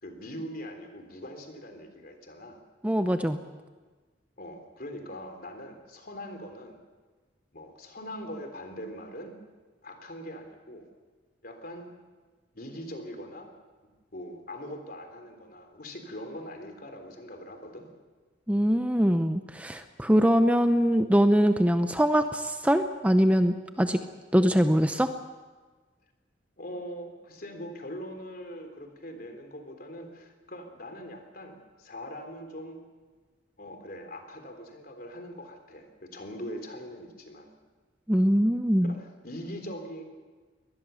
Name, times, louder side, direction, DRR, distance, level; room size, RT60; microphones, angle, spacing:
voice 1, 0.0-2.6 4.4-6.8 7.5-9.3 9.8-10.9 11.4-11.9 12.5-13.5 14.1-17.9 26.6-32.8 33.6-37.5 38.8-40.0, equal, 50° left, 5 dB, 3.5 m, -42 dB
voice 2, 2.8-3.4 18.5-24.0 24.3-25.1 38.1-38.9, equal, 10° right, 8 dB, 0.7 m, -23 dB
23.0 x 19.5 x 7.0 m, 1.3 s
head